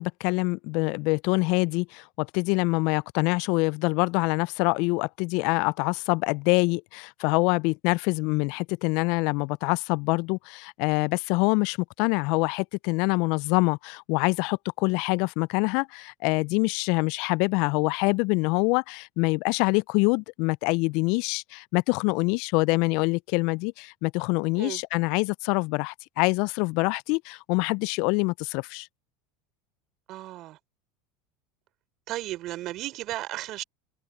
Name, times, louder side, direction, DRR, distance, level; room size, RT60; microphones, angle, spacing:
voice 1, 0.0-28.9, left 28 dB, 65° left, 0.4 m, -25 dB
voice 2, 30.1-30.6 32.1-33.6, right 15 dB, 50° right, 4.0 m, -34 dB
hypercardioid pair, 90°, 0 cm